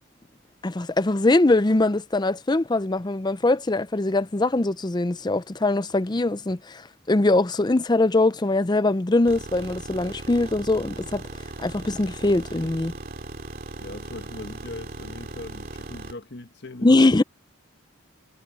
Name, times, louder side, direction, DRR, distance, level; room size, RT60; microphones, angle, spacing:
voice 1, 0.6-6.8 7.1-11.2 11.6-12.9 16.8-17.2, left 2 dB, 20° left, 0.5 m, -22 dB
sound 1, 9.2-16.1, right 2 dB, 45° right, 2.6 m, -38 dB
voice 2, 13.8-17.2, left 2 dB, 55° left, 1.5 m, -40 dB
head